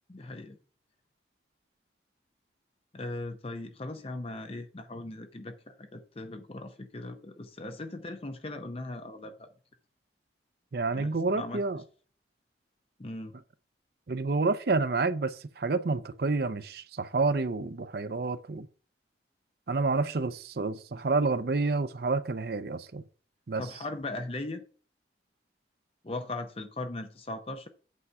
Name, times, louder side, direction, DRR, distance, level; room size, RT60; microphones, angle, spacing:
voice 1, 0.1-0.6 2.9-9.5 10.9-11.6 13.0-13.3 23.6-24.6 26.0-27.7, left 2 dB, 30° left, 0.7 m, -39 dB
voice 2, 10.7-11.8 14.1-18.7 19.7-23.0 23.5-23.6, right 3 dB, 55° right, 0.6 m, -29 dB
8.3 x 4.8 x 5.5 m
head